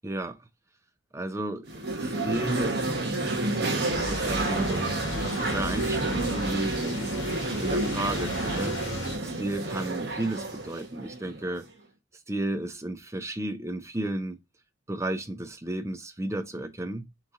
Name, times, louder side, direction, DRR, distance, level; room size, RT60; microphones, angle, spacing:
voice 1, 0.0-0.4 1.1-2.8 3.5-4.9 5.2-7.2 7.6-8.8 9.2-11.7 12.3-14.4 14.9-17.1, right 1 dB, 15° right, 0.5 m, -33 dB
sound 1, 1.7-11.7, right 2 dB, 50° right, 1.0 m, -30 dB
sound 2, 3.9-9.2, left 2 dB, 60° left, 1.1 m, -37 dB
4.1 x 3.1 x 3.5 m
head